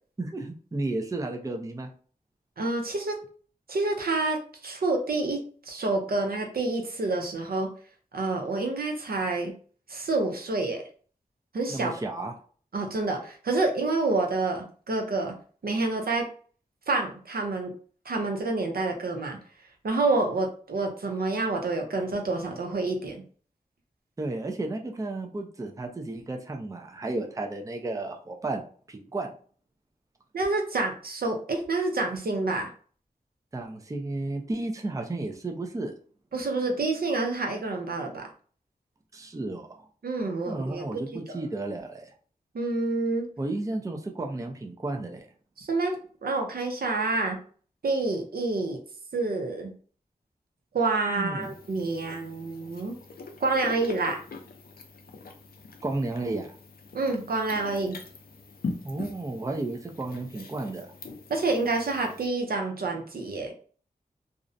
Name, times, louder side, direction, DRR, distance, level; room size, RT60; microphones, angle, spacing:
voice 1, 0.2-1.9 11.7-12.3 24.2-28.6 28.9-29.3 33.5-35.9 39.1-39.8 40.5-42.1 43.4-45.3 51.1-51.5 55.8-56.5 58.8-60.9, right 2 dB, 20° right, 3 dB, 0.4 m, -33 dB
voice 2, 2.6-3.2 3.7-7.7 8.1-9.5 9.9-10.8 11.5-11.9 12.7-15.3 15.6-16.3 16.9-17.7 18.1-19.4 19.8-23.2 30.3-32.7 36.3-38.3 40.0-40.8 41.3-41.4 42.5-43.3 45.6-47.4 47.8-48.8 49.1-49.7 50.7-53.0 53.4-54.2 56.9-58.0 61.3-63.5, right 3 dB, 70° right, 2 dB, 0.6 m, -28 dB
sound 1, 51.4-62.3, left 3 dB, 70° left, 0.5 m, -42 dB
2.5 x 2.0 x 2.5 m, 0.43 s
cardioid pair, 50°, 16 cm